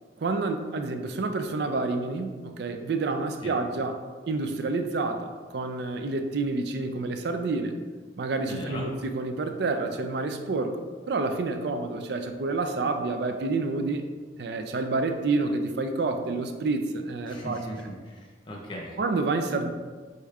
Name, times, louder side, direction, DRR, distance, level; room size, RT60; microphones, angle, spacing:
voice 1, 0.2-7.7 8.2-10.8 11.1-14.1 14.4-17.7 19.0-19.7, right 3 dB, 60° right, 6 dB, 0.4 m, -28 dB
voice 2, 8.5-8.9 17.3-19.0, equal, 25° left, -2 dB, 0.8 m, -38 dB
4.9 x 4.2 x 2.4 m, 1.4 s
head